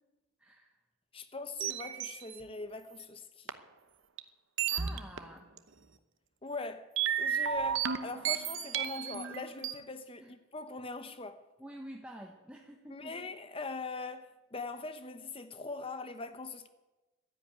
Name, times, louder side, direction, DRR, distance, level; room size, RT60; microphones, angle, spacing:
voice 1, 0.4-0.8 4.7-5.5 10.2-10.3 11.6-13.2, equal, 5° right, 1.1 m, -48 dB
voice 2, 1.1-3.5 6.4-6.9 7.2-11.4 12.9-16.7, left 3 dB, 25° left, 0.9 m, -41 dB
sound 1, 1.6-2.4 3.5-3.6 4.2-4.3 4.6-5.2 5.6-5.7 7.0-9.7, right 8 dB, 65° right, 0.9 m, -33 dB
12.0 x 10.5 x 9.0 m
head